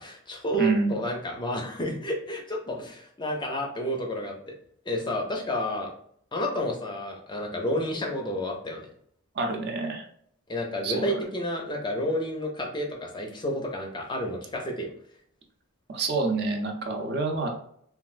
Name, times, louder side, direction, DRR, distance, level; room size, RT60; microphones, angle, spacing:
voice 1, 0.0-4.5 4.9-5.9 6.3-8.9 10.5-14.9, equal, 20° left, 1 dB, 0.5 m, -30 dB
voice 2, 0.5-1.0 9.3-10.0 10.8-11.1 15.9-17.5, right 3 dB, 50° right, 2 dB, 0.6 m, -27 dB
3.2 x 2.3 x 2.4 m, 0.66 s
head